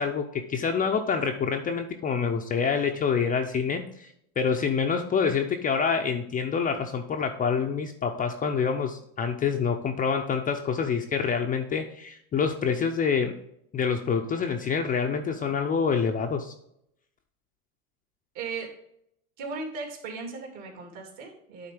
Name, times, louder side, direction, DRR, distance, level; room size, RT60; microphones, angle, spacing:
voice 1, 0.0-4.1 4.4-13.4 13.7-16.5, left 6 dB, 20° left, 4 dB, 0.5 m, -27 dB
voice 2, 18.3-18.7 19.4-21.7, right 4 dB, 55° right, 1 dB, 2.9 m, -37 dB
9.5 x 3.8 x 5.1 m, 0.75 s
hypercardioid pair, 105°, 44 cm